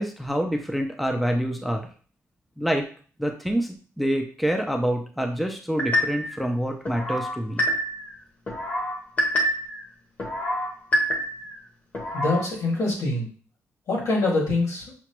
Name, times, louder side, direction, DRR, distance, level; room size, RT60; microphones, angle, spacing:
voice 1, 0.0-1.9 2.6-2.8 3.2-7.6, equal, ahead, 3 dB, 0.4 m, -26 dB
sound 1, 5.8-6.4 6.8-8.1 8.5-9.8 10.2-11.5 11.9-12.4, equal, 30° left, 0.8 m, -26 dB
voice 2, 12.1-13.3 13.9-14.8, left 2 dB, 80° left, -3 dB, 2.0 m, -24 dB
5.8 x 2.2 x 2.9 m, 0.42 s
wide cardioid pair, 165°, 5 cm